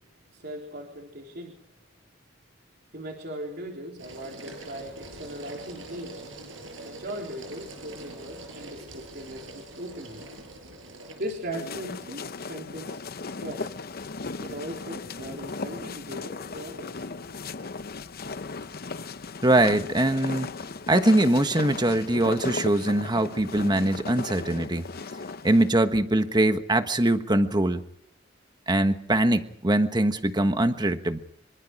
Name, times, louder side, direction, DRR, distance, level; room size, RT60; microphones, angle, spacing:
voice 1, 0.3-1.6 2.9-6.2 6.8-10.2 11.2-13.1 13.4-13.7 14.4-17.1, equal, 55° right, 0 dB, 3.9 m, -38 dB
sound 1, 4.0-21.4, right 2 dB, 85° right, 7.1 m, -46 dB
sound 2, 11.5-25.7, left 4 dB, 50° left, 0.8 m, -36 dB
voice 2, 19.4-20.5 20.9-24.8 25.4-27.8 28.7-31.2, right 1 dB, 20° right, 8 dB, 1.3 m, -22 dB
26.0 x 24.0 x 4.9 m, 0.71 s
head